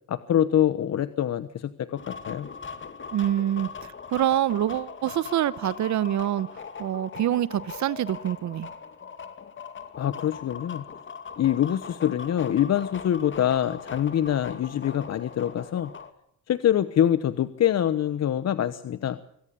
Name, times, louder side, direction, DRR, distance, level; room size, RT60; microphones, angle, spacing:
voice 1, 0.1-2.5 10.0-10.8 11.4-15.9 16.5-19.2, left 10 dB, 60° left, 1.1 m, -25 dB
sound 1, 2.0-16.1, left 5 dB, 40° left, 2.4 m, -40 dB
voice 2, 3.1-8.7, right 11 dB, 70° right, 1.0 m, -26 dB
25.0 x 17.5 x 7.0 m
cardioid pair, 90°, 30 cm